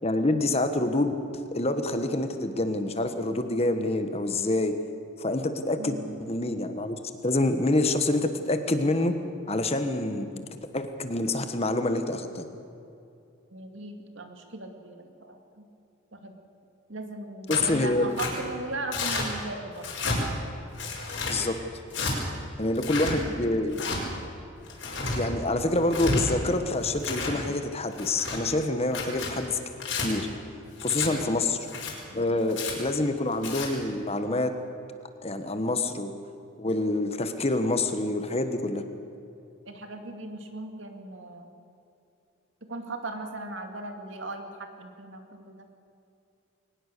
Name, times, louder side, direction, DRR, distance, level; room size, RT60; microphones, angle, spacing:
voice 1, 0.0-1.1 1.5-4.7 5.2-9.1 9.5-10.4 10.7-12.5 17.5-18.0 21.3-21.5 22.6-23.8 25.1-29.6 30.0-30.3 30.8-31.6 32.1-34.5 35.2-36.1 36.6-38.8, left 2 dB, 30° left, 8 dB, 1.3 m, -27 dB
voice 2, 5.8-6.1 13.5-15.7 16.1-16.4 16.9-19.9 31.0-31.3 32.1-32.4 39.7-41.5 42.7-45.7, right 2 dB, 70° right, 5 dB, 2.4 m, -38 dB
Tearing, 17.5-17.7 18.2-18.3 18.9-19.3 19.8-20.2 20.8-21.4 21.9-22.1 22.7-23.1 23.7-24.0 24.7-25.2 25.8-26.2 26.8-27.4 27.9-28.4 28.9-29.3 29.8-30.1 30.8-31.1 31.6-31.9 32.5-32.7 33.3-33.7, left 3 dB, 65° left, 5.4 m, -31 dB
22.5 x 19.5 x 6.8 m, 2.7 s
head